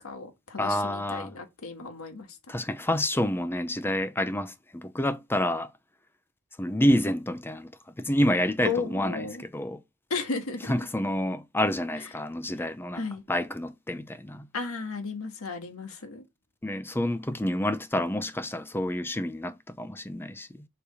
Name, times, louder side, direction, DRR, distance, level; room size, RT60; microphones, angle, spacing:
voice 1, 0.0-2.4 8.6-9.4 10.1-10.7 12.0-12.1 12.9-13.2 14.5-16.2, left 4 dB, 90° left, 1.6 m, -34 dB
voice 2, 0.6-1.3 2.5-5.7 6.6-7.7 8.0-9.8 10.7-13.0 13.3-14.5 16.6-20.7, left 1 dB, 10° left, 0.6 m, -28 dB
6.9 x 3.4 x 5.5 m
head